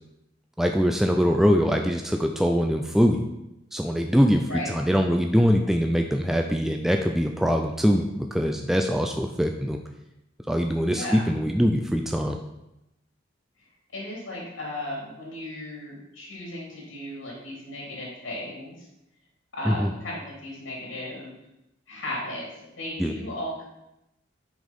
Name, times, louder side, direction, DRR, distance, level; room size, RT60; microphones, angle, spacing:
voice 1, 0.6-3.2 3.7-9.8 10.5-12.4 19.7-19.9 23.0-23.2, equal, ahead, 3 dB, 0.3 m, -23 dB
voice 2, 10.9-11.3 13.9-18.9 19.5-21.3 21.9-22.5 22.8-23.6, left 1 dB, 85° left, -4 dB, 3.1 m, -35 dB
6.2 x 5.1 x 5.4 m, 0.89 s
head